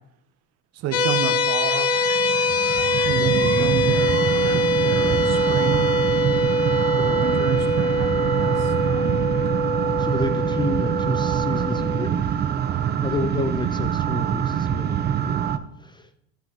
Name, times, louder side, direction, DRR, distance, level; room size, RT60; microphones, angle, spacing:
voice 1, 0.7-1.9 3.0-5.9 7.0-9.3, right 8 dB, 55° right, 8 dB, 1.0 m, -30 dB
sound 1, 0.9-12.1, left 1 dB, 50° left, 0.9 m, -23 dB
sound 2, 1.5-15.6, right 9 dB, 35° right, 0.6 m, -25 dB
voice 2, 10.0-12.3 13.0-15.4 15.8-16.1, left 3 dB, 15° left, 10 dB, 0.3 m, -30 dB
12.5 x 5.5 x 3.0 m, 0.83 s
supercardioid pair, 110°, 30 cm